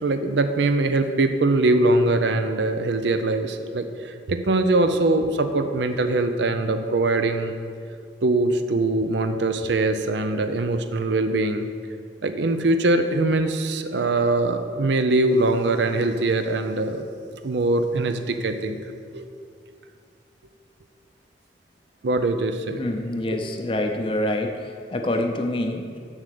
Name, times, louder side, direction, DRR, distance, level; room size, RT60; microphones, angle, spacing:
voice 1, 0.0-7.6 8.2-11.7 12.2-17.0 17.4-18.8 19.1-19.3 22.0-22.8 23.3-23.4, right 2 dB, 85° right, 8 dB, 0.5 m, -22 dB
voice 2, 22.7-26.0, left 1 dB, 30° left, 4 dB, 0.5 m, -26 dB
7.2 x 6.4 x 6.7 m, 2.2 s
head